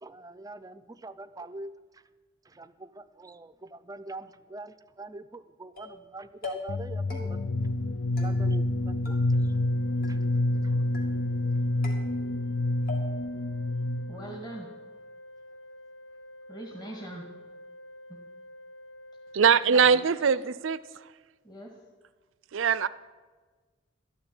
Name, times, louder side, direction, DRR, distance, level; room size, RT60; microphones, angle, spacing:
voice 1, 0.0-2.0 2.5-7.4 8.2-9.2 9.4-9.5 10.1-10.2 10.5-10.9, right 2 dB, 20° right, 0.5 m, -44 dB
sound 1, 5.8-6.1 6.4-6.8 7.1-7.6 8.2-8.8 9.0-9.7 10.0-10.6 10.9-11.5 11.8-12.5 12.9-13.4, left 3 dB, 50° left, 2.6 m, -42 dB
sound 2, 6.7-14.4, left 1 dB, 65° left, 0.5 m, -28 dB
Organ, 9.3-20.3, left 1 dB, 85° left, 1.7 m, -49 dB
voice 2, 14.1-14.7 16.5-17.3 18.1-18.2 19.6-20.3 21.4-21.7, right 1 dB, 20° left, 1.8 m, -42 dB
voice 3, 19.3-20.8 22.5-22.9, right 6 dB, 85° right, 0.5 m, -22 dB
13.0 x 6.9 x 9.9 m
head